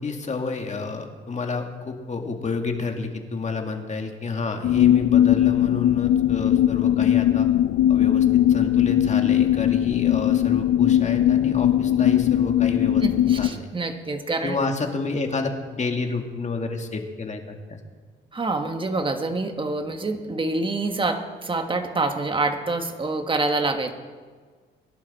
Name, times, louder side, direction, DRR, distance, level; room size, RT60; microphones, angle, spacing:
voice 1, 0.0-7.5 7.9-13.1 13.4-13.7 14.4-17.8, left 4 dB, 35° left, 4 dB, 2.0 m, -29 dB
sound 1, 4.6-13.5, left 11 dB, 75° left, 0.6 m, -19 dB
voice 2, 13.0-14.6 18.3-23.9, right 3 dB, 25° right, 6 dB, 1.5 m, -26 dB
21.0 x 11.5 x 4.2 m, 1.5 s
cardioid pair, 90°, 20 cm